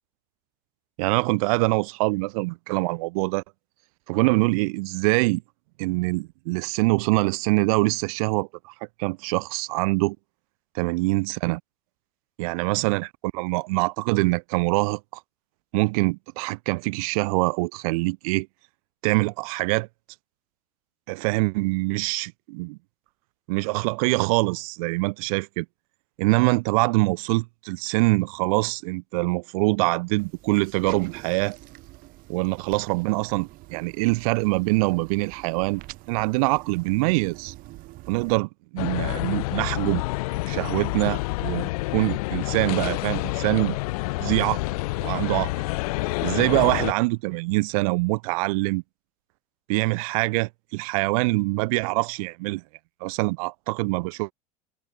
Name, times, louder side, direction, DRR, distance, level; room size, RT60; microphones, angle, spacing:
voice 1, 1.0-3.4 4.1-5.4 5.8-8.7 9.0-10.2 10.7-11.6 12.4-15.2 15.7-18.5 19.0-19.9 21.1-22.8 23.5-25.7 26.2-31.6 32.3-35.8 36.1-37.5 38.1-40.0 40.4-43.8 44.2-44.6 45.0-45.5 46.2-48.8 49.7-52.6 53.0-54.3, right 26 dB, 70° right, 0.5 m, -24 dB
sound 1, 30.2-38.4, right 20 dB, 50° right, 1.4 m, -45 dB
sound 2, 38.8-46.9, left 22 dB, 80° left, 0.5 m, -28 dB
supercardioid pair, 135°, 19 cm